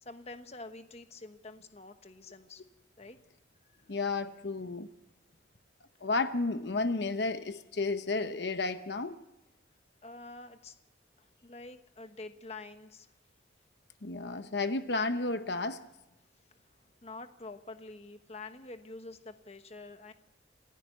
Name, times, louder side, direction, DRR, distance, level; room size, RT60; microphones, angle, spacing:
voice 1, 0.0-2.6 3.0-3.2 10.0-10.7 11.4-13.1 17.0-20.1, left 3 dB, 35° left, 8 dB, 1.2 m, -47 dB
voice 2, 3.9-4.9 6.0-9.2 14.0-15.8, left 3 dB, 60° left, 9 dB, 1.0 m, -32 dB
28.0 x 15.5 x 7.0 m, 0.95 s
head